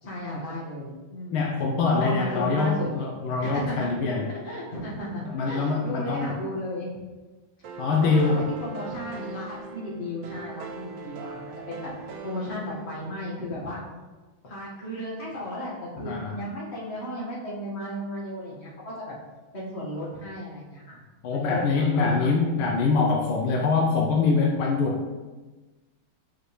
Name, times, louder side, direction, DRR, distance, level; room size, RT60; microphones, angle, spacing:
voice 1, 0.0-1.4 1.9-2.9 3.4-3.9 4.4-6.9 8.0-11.9 12.2-13.8 14.4-19.1 19.5-21.0 21.3-22.3, equal, 30° left, -6 dB, 1.7 m, -34 dB
voice 2, 1.3-4.3 5.3-6.3 7.8-8.5 16.0-16.4 21.2-25.1, left 4 dB, 80° left, 0 dB, 1.5 m, -24 dB
sound 1, 7.6-13.5, right 5 dB, 70° right, 1.2 m, -41 dB
5.9 x 5.2 x 3.2 m, 1.2 s
omnidirectional pair, 2.4 m